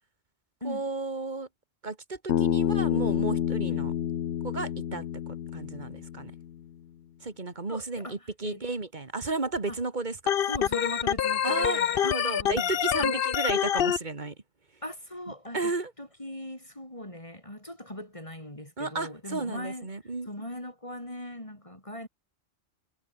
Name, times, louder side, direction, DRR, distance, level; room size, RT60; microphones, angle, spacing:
voice 1, 0.6-1.5 1.8-3.9 4.4-5.1 5.5-6.3 7.2-10.3 11.4-14.4 15.5-15.9 18.8-20.3, right 3 dB, 40° right, 2.2 m, -33 dB
Bass guitar, 2.3-6.6, left 10 dB, 80° left, 1.1 m, -29 dB
voice 2, 7.7-8.6 9.7-9.8 10.5-12.0 12.4-13.2 14.8-15.7 16.0-19.9 20.3-22.1, left 1 dB, 25° left, 4.5 m, -40 dB
Organ, 10.3-14.0, left 9 dB, 60° left, 0.8 m, -26 dB
omnidirectional pair, 1.2 m